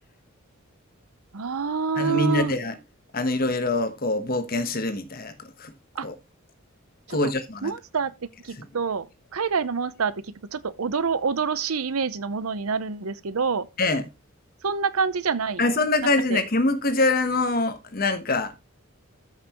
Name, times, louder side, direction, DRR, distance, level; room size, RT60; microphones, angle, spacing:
voice 1, 1.3-2.5 6.0-6.1 7.1-7.3 7.6-9.1 9.3-13.7 14.6-15.6 16.0-16.4, right 5 dB, 90° right, 0.7 m, -27 dB
voice 2, 2.0-2.8 3.1-5.3 5.6-5.7 6.0-6.1 7.1-7.7 8.6-8.7 13.8-14.1 15.6-18.5, left 2 dB, 45° left, 1.1 m, -24 dB
13.5 x 5.7 x 3.0 m
head